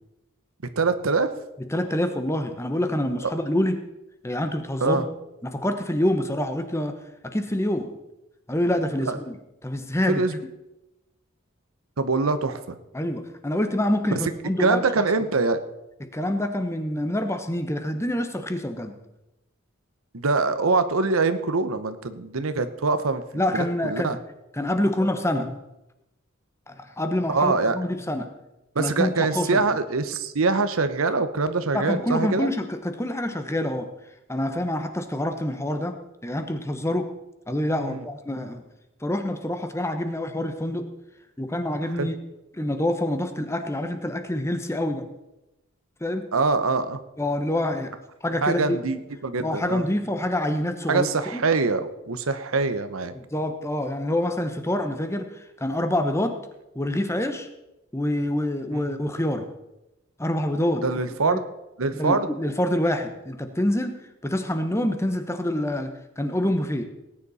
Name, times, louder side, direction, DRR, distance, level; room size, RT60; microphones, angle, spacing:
voice 1, 0.8-1.3 4.8-5.0 9.0-9.2 10.1-10.4 12.0-12.8 14.1-14.2 14.6-15.6 20.1-24.2 27.3-27.8 28.7-32.5 37.8-38.0 42.0-42.1 46.3-47.0 48.4-49.8 50.9-53.1 58.7-58.9 60.8-61.4 61.8-62.3, right 3 dB, 90° right, 11 dB, 1.0 m, -24 dB
voice 2, 1.7-3.8 4.2-5.0 5.4-7.0 7.2-7.9 8.5-9.1 9.6-10.2 12.9-14.8 16.0-19.0 23.3-24.2 24.5-25.6 26.7-28.3 28.8-29.6 31.7-33.9 34.3-36.0 36.2-37.1 37.5-38.6 39.0-40.9 41.4-42.1 42.5-45.1 46.0-46.3 47.2-47.9 48.2-48.8 49.4-51.1 51.3-51.4 53.1-56.4 56.7-57.5 57.9-59.5 60.2-60.8 61.3-61.4 62.0-66.8, left 1 dB, 15° left, 7 dB, 1.0 m, -26 dB
18.5 x 9.6 x 4.2 m, 0.95 s
head